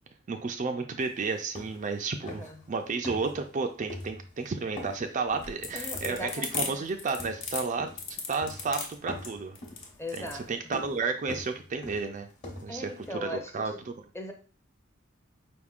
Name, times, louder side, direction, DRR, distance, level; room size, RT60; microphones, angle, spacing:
voice 1, 0.3-9.6 10.1-12.3 12.6-13.9, right 4 dB, 35° right, 0.4 m, -32 dB
sound 1, 1.0-1.1 1.4-2.0 2.3-2.7 3.0-3.6 3.9-4.5 4.8-6.9 7.2-8.1 8.4-8.8 9.1-13.1, left 1 dB, 35° left, 1.1 m, -43 dB
voice 2, 2.2-2.7 5.7-6.8 10.0-10.5 12.7-13.9 14.1-14.3, left 1 dB, 15° left, 0.6 m, -39 dB
sound 2, 5.3-10.4, left 5 dB, 65° left, 1.0 m, -36 dB
5.1 x 3.5 x 2.4 m
head